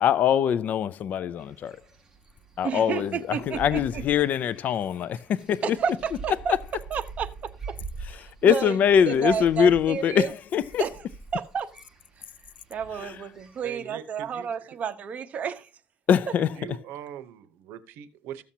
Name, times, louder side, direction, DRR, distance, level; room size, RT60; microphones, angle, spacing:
voice 1, 0.0-1.8 2.6-5.8 6.5-6.6 8.2-10.8 13.0-13.2 16.1-16.5, left 8 dB, 50° left, 0.4 m, -23 dB
sound 1, 1.4-13.7, right 4 dB, 15° right, 2.1 m, -44 dB
voice 2, 2.6-4.0 5.6-6.5 6.9-7.8 8.1-8.8 9.1-10.3 10.8-10.9 11.3-11.7 12.7-15.7, right 7 dB, 40° right, 0.9 m, -31 dB
voice 3, 13.6-14.5 16.6-18.4, right 10 dB, 80° right, 0.8 m, -41 dB
14.0 x 7.2 x 2.8 m
cardioid pair, 130°, 4 cm